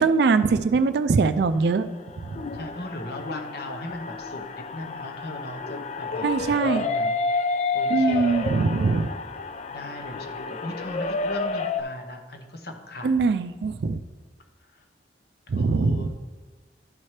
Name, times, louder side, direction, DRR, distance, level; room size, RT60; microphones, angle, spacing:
voice 1, 0.0-1.9 2.2-2.4 6.2-6.9 7.9-9.1 13.0-14.0 15.5-16.1, right 4 dB, 60° right, 11 dB, 0.3 m, -22 dB
sound 1, 2.0-11.8, left 3 dB, 40° left, 0.4 m, -30 dB
voice 2, 2.5-7.5 7.7-8.5 9.7-13.3 14.6-14.8 15.5-16.1, left 1 dB, 60° left, 4 dB, 0.9 m, -38 dB
12.0 x 4.3 x 3.2 m, 1.4 s
head